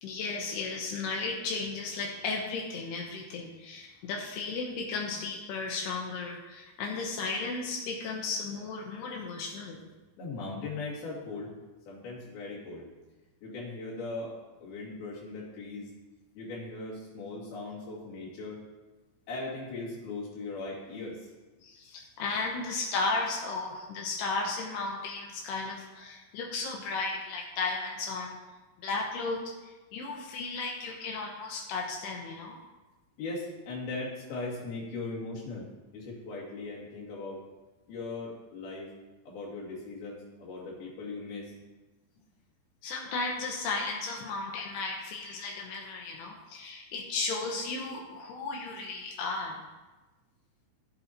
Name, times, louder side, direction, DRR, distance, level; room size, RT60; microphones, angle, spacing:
voice 1, 0.0-9.8 21.6-28.4 28.8-32.6 42.8-49.6, left 3 dB, 80° left, 0 dB, 2.4 m, -34 dB
voice 2, 10.2-11.5 11.9-12.9 13.4-15.9 16.4-18.6 19.3-21.3 33.2-35.7 35.9-37.4 37.9-38.9 39.3-41.6, left 3 dB, 55° left, -5 dB, 3.8 m, -39 dB
15.0 x 8.1 x 2.9 m, 1.2 s
omnidirectional pair, 5.8 m